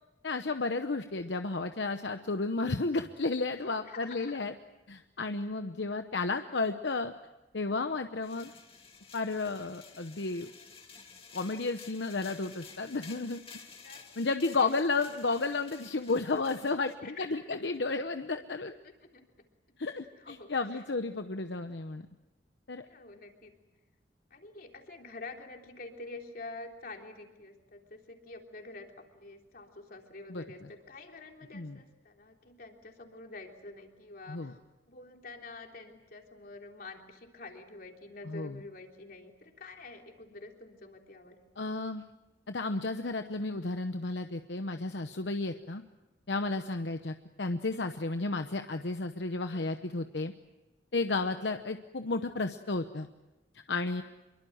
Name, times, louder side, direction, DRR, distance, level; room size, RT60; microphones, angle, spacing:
voice 1, 0.2-4.5 4.9-7.1 7.5-8.5 9.1-10.5 11.3-13.4 14.2-18.7 19.8-22.1 22.7-22.9 30.3-30.4 31.5-31.8 34.3-34.5 38.3-38.5 41.6-42.0 42.5-45.8 46.3-50.3 50.9-53.1 53.7-54.0, left 3 dB, 75° left, 7 dB, 0.9 m, -32 dB
voice 2, 3.9-4.3 7.7-7.9 13.8-14.7 17.0-17.6 18.8-19.2 20.2-20.8 22.9-23.5 24.3-34.6 34.9-41.4 49.5-49.6, left 3 dB, 55° left, 2 dB, 3.5 m, -48 dB
sound 1, 8.2-16.9, left 5 dB, 35° left, 2.5 m, -52 dB
26.0 x 23.5 x 7.9 m, 1.1 s
head